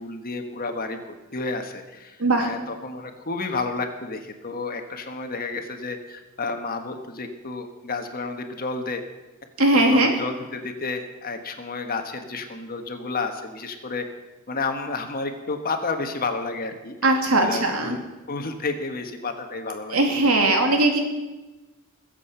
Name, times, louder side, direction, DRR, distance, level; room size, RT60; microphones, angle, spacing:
voice 1, 0.0-9.0 9.7-14.0 14.5-18.0 18.3-20.3, left 3 dB, 45° left, 6 dB, 1.4 m, -31 dB
voice 2, 9.6-10.1 17.0-18.0 19.9-21.0, right 2 dB, 80° right, 3 dB, 2.5 m, -19 dB
21.5 x 7.8 x 5.7 m, 1.1 s
head